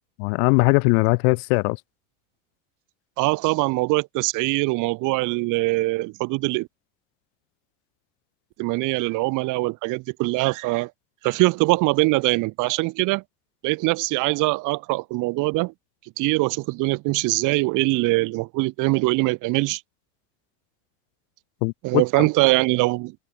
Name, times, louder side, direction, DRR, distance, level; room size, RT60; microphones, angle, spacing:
voice 1, 0.2-1.8 21.6-22.3, left 36 dB, 70° left, 3.7 m, -20 dB
voice 2, 3.2-6.7 8.6-10.9 11.2-13.2 13.6-15.7 16.2-19.8 21.8-23.1, right 23 dB, 50° right, 1.7 m, -22 dB
supercardioid pair, 145°, 38 cm